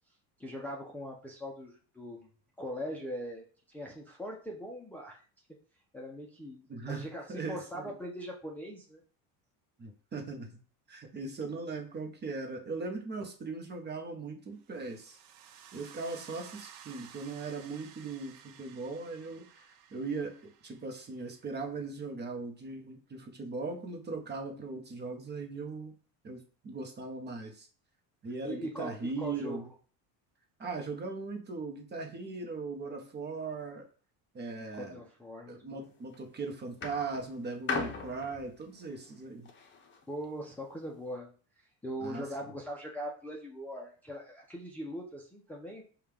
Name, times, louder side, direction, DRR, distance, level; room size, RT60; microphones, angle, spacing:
voice 1, 0.4-2.3 2.6-5.2 5.9-9.0 28.4-29.7 34.7-35.8 40.1-45.8, equal, 5° left, -2 dB, 0.6 m, -41 dB
voice 2, 6.7-7.0 7.3-7.8 9.8-10.5 10.9-15.2 15.7-25.9 26.2-26.4 26.6-27.7 28.2-29.7 30.6-33.9 34.3-35.0 35.5-39.5 42.0-42.2, right 3 dB, 30° right, 3 dB, 1.0 m, -39 dB
sound 1, 14.7-21.6, right 9 dB, 65° right, 0.6 m, -54 dB
sound 2, 35.8-36.2 36.8-40.0 40.9-41.0, left 4 dB, 30° left, 0.8 m, -39 dB
5.2 x 2.4 x 3.4 m, 0.40 s
cardioid pair, 125°, 37 cm